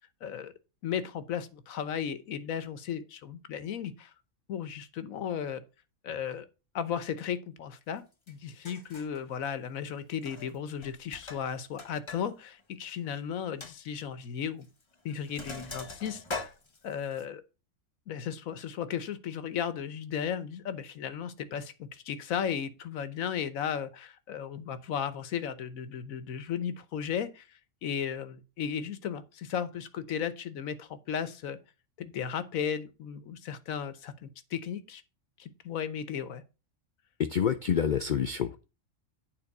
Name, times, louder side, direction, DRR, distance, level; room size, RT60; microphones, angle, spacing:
voice 1, 0.2-0.5 0.8-4.1 4.5-5.6 6.0-6.5 6.7-14.7 15.0-16.5 16.8-17.4 18.1-31.6 32.0-35.0 35.4-36.4, left 8 dB, 85° left, 1.3 m, -35 dB
Sink (filling or washing), 8.3-8.4 8.6-9.2 10.1-10.6 10.8-12.2 12.5-12.6 13.0-13.1 13.6-13.7 14.6-14.8 15.1-17.2, left 3 dB, 25° left, 0.8 m, -41 dB
voice 2, 37.2-38.6, left 8 dB, 65° left, 0.4 m, -28 dB
8.9 x 4.0 x 6.5 m
omnidirectional pair, 1.4 m